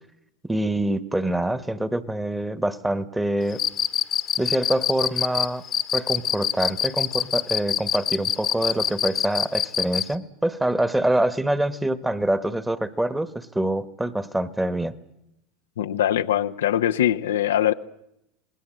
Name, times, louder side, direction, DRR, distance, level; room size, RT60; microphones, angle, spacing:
voice 1, 0.4-3.6 4.4-5.6 5.9-14.9, right 1 dB, 10° right, 1.5 m, -25 dB
Cricket, 3.5-10.1, left 9 dB, 35° left, 1.2 m, -24 dB
voice 2, 15.8-17.7, left 11 dB, 80° left, 0.8 m, -22 dB
26.5 x 20.0 x 7.8 m
hypercardioid pair, 90°, 0 cm